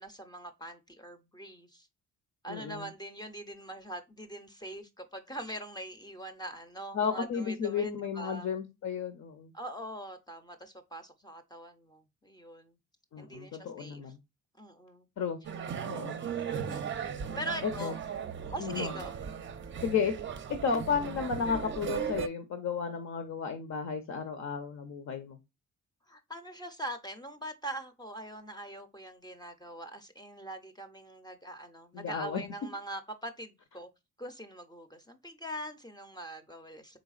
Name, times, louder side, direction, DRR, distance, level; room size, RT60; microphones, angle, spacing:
voice 1, 0.0-1.9 2.4-8.5 9.5-12.8 13.2-14.0 14.6-15.1 15.6-15.9 16.7-16.8 17.4-18.0 18.5-19.1 26.1-33.9 34.2-37.0, right 1 dB, 15° left, 0.5 m, -42 dB
voice 2, 2.5-2.9 6.9-9.5 13.1-14.2 15.2-15.4 15.9-16.2 17.6-17.9 18.6-18.9 19.8-20.1 20.6-25.4 31.9-32.4, left 6 dB, 60° left, 0.7 m, -33 dB
sound 1, 15.4-22.3, right 7 dB, 40° right, 0.5 m, -37 dB
4.0 x 3.4 x 2.4 m
cardioid pair, 85°, 32 cm